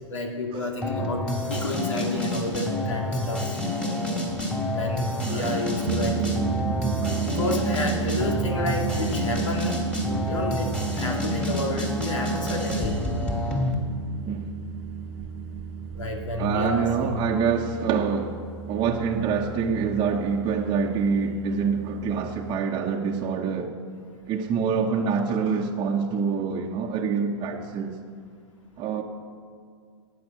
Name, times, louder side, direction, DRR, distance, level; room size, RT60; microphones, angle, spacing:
voice 1, 0.1-4.0 4.7-6.2 7.3-9.8 10.2-13.0 15.9-17.2, left 2 dB, 85° left, 2.4 m, -30 dB
sound 1, 0.8-13.7, left 1 dB, 5° left, 2.4 m, -28 dB
sound 2, 4.3-22.6, right 8 dB, 50° right, 0.7 m, -33 dB
voice 2, 5.2-5.6 7.0-7.3 14.2-14.4 16.4-23.7 24.3-28.0 28.8-29.0, right 6 dB, 30° right, 1.0 m, -26 dB
12.5 x 9.5 x 7.8 m
hypercardioid pair, 125°, 16 cm